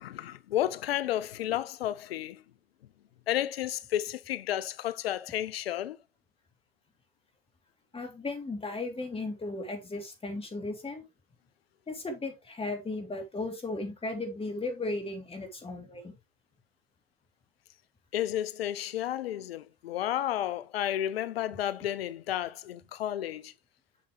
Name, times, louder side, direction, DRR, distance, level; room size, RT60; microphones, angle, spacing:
voice 1, 0.0-2.4 3.3-6.0 18.1-23.5, left 12 dB, 85° left, 0.5 m, -32 dB
voice 2, 7.9-11.0 11.9-16.1, left 2 dB, 20° left, 3.2 m, -36 dB
7.5 x 6.6 x 3.3 m
hypercardioid pair, 85°, 30 cm